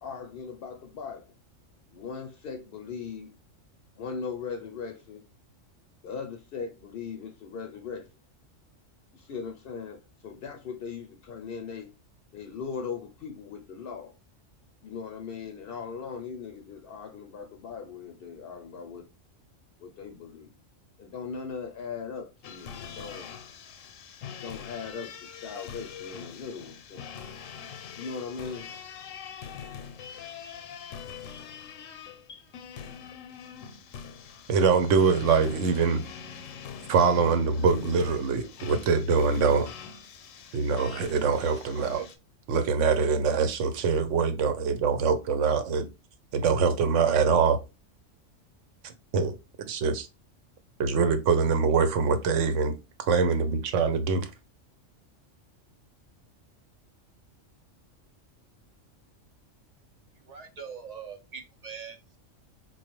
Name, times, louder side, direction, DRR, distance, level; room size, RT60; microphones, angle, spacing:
voice 1, 0.0-1.2 1.9-3.3 4.0-5.3 6.0-8.1 9.1-11.9 12.3-14.2 14.8-19.1 19.8-20.5 21.0-23.3 24.3-27.1 28.0-28.7 32.3-32.4, left 5 dB, 60° left, 0.6 m, -39 dB
sound 1, 22.4-42.2, left 7 dB, 85° left, 1.0 m, -43 dB
voice 2, 34.5-36.0 36.9-39.7 40.5-42.1 42.5-45.9 46.3-47.6 49.1-49.4 49.7-50.1 50.8-52.8 53.1-54.3, right 5 dB, 75° right, 1.0 m, -24 dB
voice 3, 60.3-62.2, right 6 dB, 55° right, 0.4 m, -42 dB
4.4 x 2.3 x 2.9 m
omnidirectional pair, 1.3 m